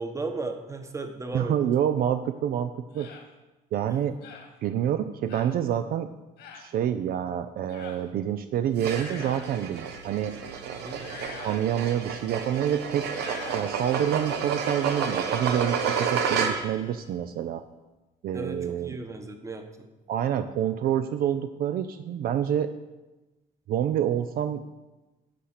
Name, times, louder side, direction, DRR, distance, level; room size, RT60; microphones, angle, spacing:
voice 1, 0.0-1.5 3.9-4.0 10.8-11.0 18.3-19.9, right 3 dB, 20° right, 6 dB, 1.1 m, -35 dB
voice 2, 1.3-3.1 3.7-4.1 4.6-6.1 6.5-10.3 11.4-13.1 13.5-17.6 18.2-19.0 20.1-22.7 23.7-24.6, right 10 dB, 60° right, 10 dB, 0.5 m, -27 dB
sound 1, 2.9-3.2 4.2-4.5 5.3-5.5 6.4-6.7 7.7-8.0 8.8-9.6 10.9-11.6 13.0-13.7, left 6 dB, 80° left, 1.8 m, -44 dB
sound 2, 8.8-16.9, right 6 dB, 75° right, 1.1 m, -30 dB
11.5 x 4.2 x 6.6 m, 1.1 s
cardioid pair, 110°, 17 cm